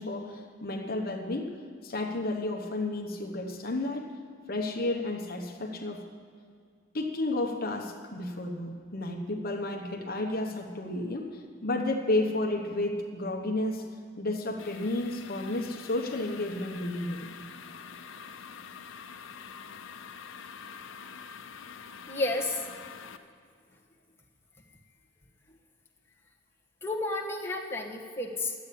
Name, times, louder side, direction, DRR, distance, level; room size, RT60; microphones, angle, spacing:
voice 1, 0.0-1.6 1.8-4.1 4.5-6.0 6.9-11.3 11.6-13.9 14.2-17.3, left 2 dB, 50° left, 2 dB, 1.0 m, -32 dB
sound 1, 14.6-23.2, left 6 dB, 70° left, 0.7 m, -46 dB
voice 2, 22.1-22.6 26.8-28.5, left 2 dB, 15° left, -2 dB, 1.3 m, -31 dB
11.5 x 8.4 x 8.4 m, 2.2 s
head